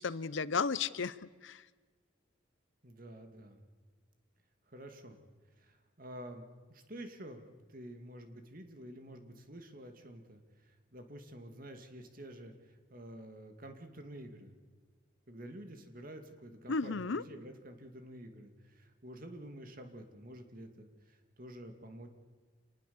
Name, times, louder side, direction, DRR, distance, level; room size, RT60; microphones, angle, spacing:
voice 1, 0.0-1.6 16.7-17.2, left 5 dB, 65° left, 17 dB, 0.7 m, -34 dB
voice 2, 2.8-3.6 4.7-5.2 5.6-14.5 15.3-22.1, right 1 dB, 40° right, 6 dB, 2.4 m, -49 dB
27.0 x 20.0 x 7.1 m, 1.4 s
head